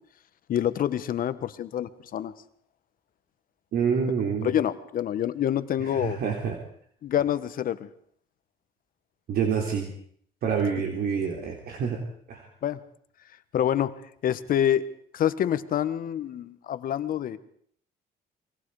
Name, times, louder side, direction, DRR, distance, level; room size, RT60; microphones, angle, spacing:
voice 1, 0.5-2.3 4.4-6.2 7.0-7.9 12.6-12.8 13.5-14.8 15.1-17.4, left 10 dB, 55° left, 12 dB, 1.5 m, -27 dB
voice 2, 3.7-4.5 5.9-6.6 9.3-9.9 10.4-12.0 12.3-12.4, right 6 dB, 65° right, 2 dB, 3.7 m, -27 dB
29.5 x 23.5 x 5.0 m, 0.62 s
cardioid pair, 110°, 17 cm